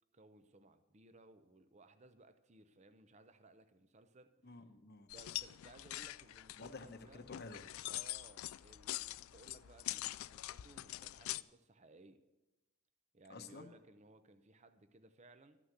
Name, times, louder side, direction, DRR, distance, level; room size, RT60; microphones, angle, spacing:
voice 1, 0.1-4.3 5.1-7.3 7.9-12.2 13.1-15.6, right 2 dB, 30° right, 10 dB, 0.6 m, -61 dB
voice 2, 4.4-5.1 6.6-7.7 13.3-13.7, left 3 dB, 50° left, 8 dB, 0.9 m, -51 dB
sound 1, 5.1-11.4, left 16 dB, 75° left, 0.3 m, -44 dB
13.0 x 6.1 x 7.9 m, 1.0 s
head